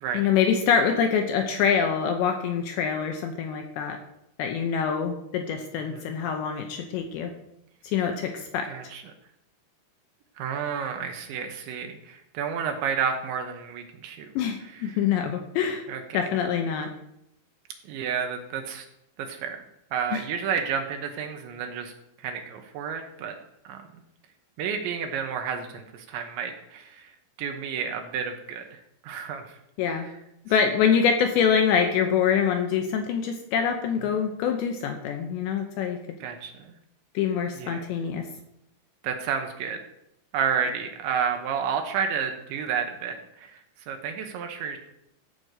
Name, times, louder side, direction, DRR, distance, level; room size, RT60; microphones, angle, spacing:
voice 1, 0.1-4.0 4.4-7.3 7.8-8.7 14.4-15.9 16.1-16.9 20.1-20.2 29.8-30.1 30.5-36.0 37.1-38.3, left 7 dB, 75° left, 4 dB, 2.8 m, -25 dB
voice 2, 8.7-9.0 10.4-14.3 14.9-15.0 15.9-16.2 17.9-18.9 19.2-19.6 19.9-21.9 22.2-23.4 23.7-23.8 24.6-27.0 27.4-28.8 29.0-29.4 36.2-36.7 37.6-37.8 39.0-39.8 40.3-43.6 43.9-44.8, right 7 dB, 75° right, 4 dB, 3.0 m, -30 dB
14.0 x 5.2 x 8.1 m, 0.82 s
omnidirectional pair, 5.9 m